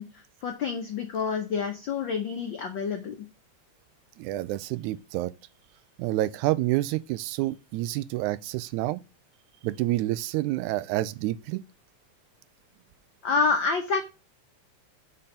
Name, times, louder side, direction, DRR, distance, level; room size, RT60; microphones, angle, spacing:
voice 1, 0.0-3.2 13.2-14.0, left 5 dB, 90° left, 1.0 m, -28 dB
voice 2, 4.2-5.3 6.0-9.0 9.6-11.6, right 16 dB, 90° right, 2.0 m, -28 dB
5.6 x 4.3 x 5.0 m
omnidirectional pair, 3.3 m